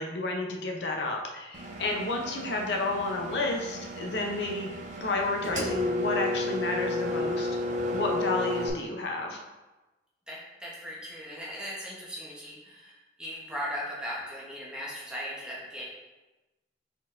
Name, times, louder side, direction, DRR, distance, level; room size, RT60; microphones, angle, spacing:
voice 1, 0.0-4.7 5.0-7.5 7.9-9.5, left 2 dB, 70° left, 1 dB, 0.6 m, -31 dB
Engine, 1.5-8.7, left 1 dB, 40° right, 0.5 m, -32 dB
voice 2, 10.3-15.9, equal, 5° right, -6 dB, 0.8 m, -38 dB
4.8 x 3.8 x 2.5 m, 1.1 s
head